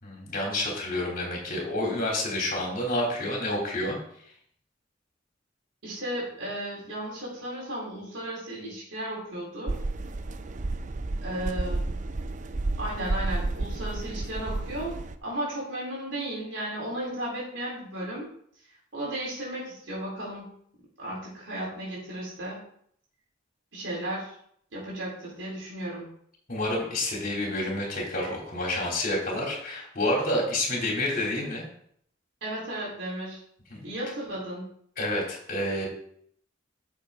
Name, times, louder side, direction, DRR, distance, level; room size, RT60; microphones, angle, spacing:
voice 1, 0.0-4.0 26.5-31.7 35.0-35.9, left 1 dB, 45° left, -2 dB, 3.4 m, -29 dB
voice 2, 5.8-9.8 11.2-11.9 12.8-18.3 18.9-20.5 21.0-22.6 23.7-24.3 24.7-26.1 32.4-33.4 33.8-34.6, right 1 dB, 80° right, -5 dB, 4.3 m, -34 dB
sound 1, 9.7-15.2, right 2 dB, 40° right, 0.5 m, -31 dB
9.5 x 7.1 x 3.9 m, 0.66 s
head